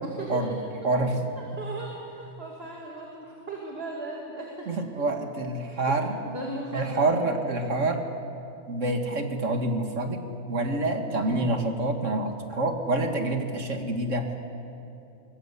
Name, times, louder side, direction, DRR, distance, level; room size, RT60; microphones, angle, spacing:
voice 1, 0.0-0.4 1.4-4.7 5.8-7.7 11.1-11.5, right 2 dB, 45° right, -2 dB, 2.9 m, -37 dB
voice 2, 0.8-1.3 4.7-6.2 6.7-8.0 8.7-14.3, right 2 dB, 65° right, 4 dB, 2.3 m, -27 dB
23.0 x 21.0 x 8.3 m, 2.7 s
omnidirectional pair, 1.4 m